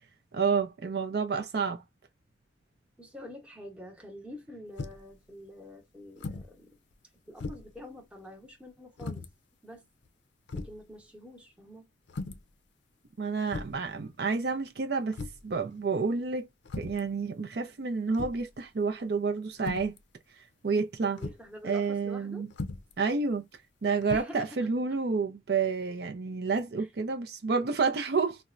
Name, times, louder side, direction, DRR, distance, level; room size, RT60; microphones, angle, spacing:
voice 1, 0.3-1.8 13.2-15.2 15.4-16.5 16.8-19.9 20.6-21.2 21.6-22.5 23.0-23.5 23.8-28.4, right 4 dB, 60° right, 0.5 m, -29 dB
voice 2, 3.0-6.8 7.3-9.2 9.6-9.9 10.5-11.9 21.2-22.5 24.1-24.7 26.8-26.9, left 1 dB, 5° right, 0.8 m, -46 dB
sound 1, 4.8-5.1 6.2-6.5 6.9-7.0 7.4-7.8 9.0-9.3 10.0-10.1 10.5-10.8 12.1-12.5 13.5-13.9 15.1-15.5 16.6-17.1 18.1-18.5 19.6-20.0 21.2-21.5 22.5-22.9 24.0-24.2, left 3 dB, 75° left, 0.5 m, -38 dB
4.1 x 2.1 x 2.4 m
head